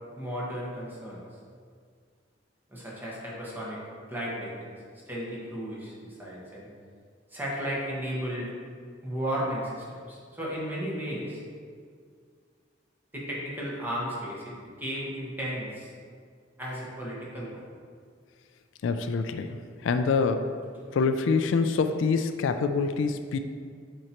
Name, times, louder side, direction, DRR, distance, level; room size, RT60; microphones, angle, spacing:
voice 1, 0.2-1.2 2.7-3.8 4.1-4.7 5.1-6.7 7.3-8.5 9.0-11.4 13.1-15.9 16.6-17.6, equal, 10° right, -6 dB, 1.3 m, -34 dB
voice 2, 18.8-20.5 20.9-23.4, left 4 dB, 80° left, 9 dB, 0.3 m, -26 dB
7.7 x 4.4 x 2.9 m, 2.1 s
head